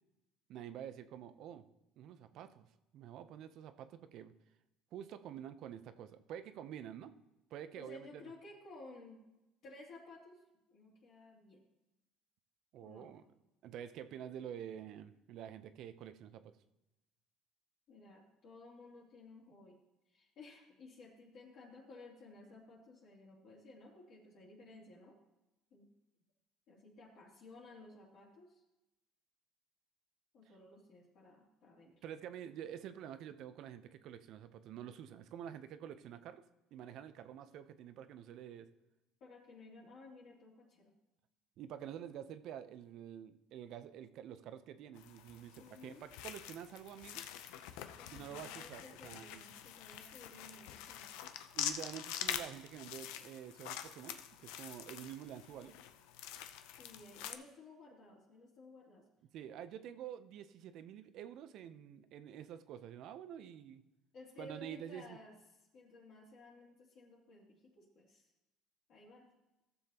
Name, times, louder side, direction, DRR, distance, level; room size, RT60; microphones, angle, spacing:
voice 1, 0.5-1.7 2.0-2.7 2.9-4.3 4.9-7.1 7.5-8.3 12.7-13.2 13.6-16.5 32.0-36.4 36.7-38.7 41.6-47.2 48.1-49.4 51.5-55.8 59.3-63.8 64.4-65.2, right 10 dB, 60° right, 12 dB, 0.6 m, -48 dB
voice 2, 7.7-9.2 9.6-10.4 10.7-11.6 12.8-13.2 17.9-19.8 20.1-25.2 25.7-25.9 26.7-28.6 30.3-32.0 39.2-41.0 45.6-46.1 48.0-51.1 56.7-59.1 64.1-65.3 65.7-68.3 68.9-69.3, left 2 dB, 55° left, -5 dB, 2.7 m, -56 dB
sound 1, 45.0-57.3, left 10 dB, 85° left, 0.6 m, -45 dB
15.0 x 7.1 x 2.9 m, 0.95 s
cardioid pair, 115°, 0 cm